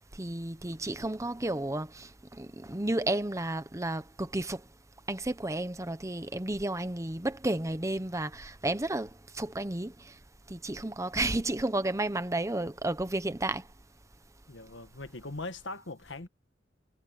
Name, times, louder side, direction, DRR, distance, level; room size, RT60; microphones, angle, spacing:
voice 1, 0.2-4.6 5.1-9.1 9.3-9.9 10.5-13.6, right 2 dB, 15° right, 1.0 m, -32 dB
voice 2, 14.5-16.3, left 2 dB, 75° left, 1.6 m, -40 dB
head